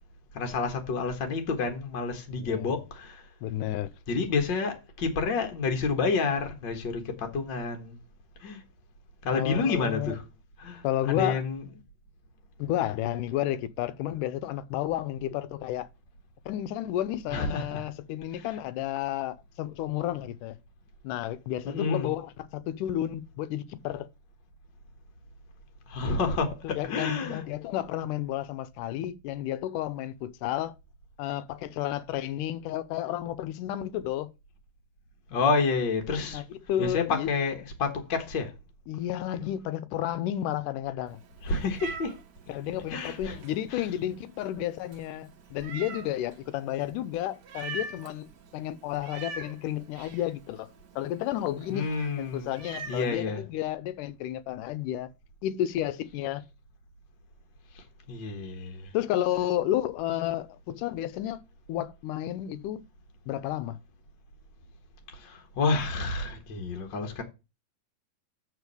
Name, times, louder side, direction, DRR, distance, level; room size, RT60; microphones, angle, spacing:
voice 1, 0.3-3.2 4.1-7.9 8.4-8.6 9.2-10.2 10.6-11.6 17.3-17.9 18.4-18.5 21.6-22.1 25.9-27.4 35.3-36.4 36.8-38.5 41.4-42.1 42.9-43.4 43.7-43.8 51.7-52.5 52.9-53.4 58.1-58.9 65.1-67.2, left 4 dB, 50° left, 1.4 m, -29 dB
voice 2, 2.4-2.8 3.4-3.9 9.3-10.2 10.8-11.4 12.6-15.9 16.5-20.6 21.0-24.1 26.6-30.8 31.2-34.3 36.3-37.3 38.9-41.2 42.5-50.7 51.0-51.9 52.2-55.1 55.4-56.4 58.9-61.4 61.7-62.8 63.3-63.8, left 12 dB, 80° left, 2.1 m, -31 dB
Meow, 41.1-53.1, right 4 dB, 85° right, 0.9 m, -45 dB
8.3 x 4.2 x 6.7 m
omnidirectional pair, 3.8 m